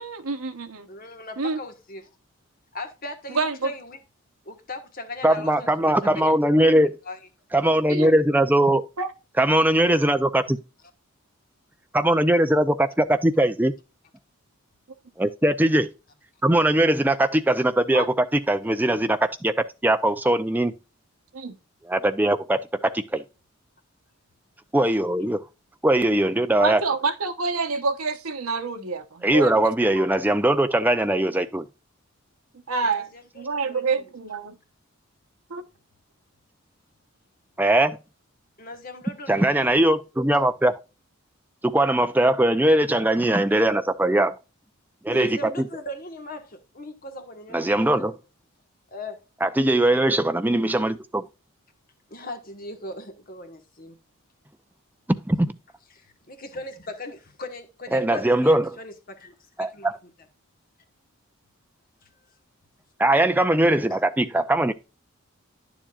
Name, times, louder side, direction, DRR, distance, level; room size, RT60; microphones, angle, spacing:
voice 1, 0.0-0.9 1.4-1.6 3.3-3.7 7.9-8.1 9.0-9.1 17.9-18.1 21.3-21.6 26.6-30.1 32.7-33.1 33.4-34.6 35.5-35.7, right 4 dB, 80° right, 1.0 m, -27 dB
voice 2, 0.9-2.1 2.7-4.0 4.4-6.8 7.1-7.2 32.8-33.8 38.6-39.8 45.1-47.7 48.0-48.1 48.9-49.2 52.1-54.0 55.9-59.9, left 2 dB, 40° left, 1.5 m, -39 dB
voice 3, 5.2-7.0 7.5-8.9 9.4-10.6 11.9-13.7 15.2-15.9 16.4-20.7 21.9-23.2 24.7-25.4 25.8-26.8 29.2-31.7 37.6-38.0 39.3-40.8 41.6-44.4 45.0-45.4 47.5-48.1 49.4-51.3 55.2-55.5 57.9-58.7 59.6-59.9 63.0-64.7, right 1 dB, 10° right, 0.5 m, -20 dB
10.5 x 7.2 x 2.4 m
head